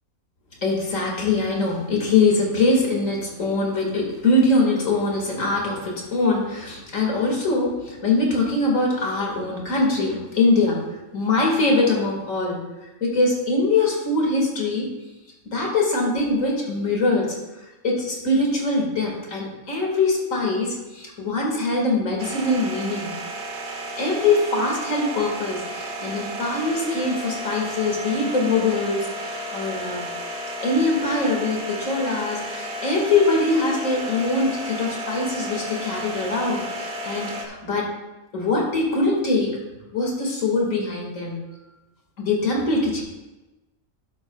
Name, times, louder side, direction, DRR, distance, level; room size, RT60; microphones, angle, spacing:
voice 1, 0.6-10.8 11.1-12.6 13.0-14.9 15.5-17.4 17.8-23.1 24.0-30.1 30.6-37.8 38.3-39.5 39.9-41.4 42.2-43.0, left 2 dB, 90° left, -1 dB, 2.5 m, -23 dB
sound 1, 22.2-37.5, equal, 45° right, 1.2 m, -33 dB
12.0 x 8.5 x 2.4 m, 1.0 s
omnidirectional pair, 1.3 m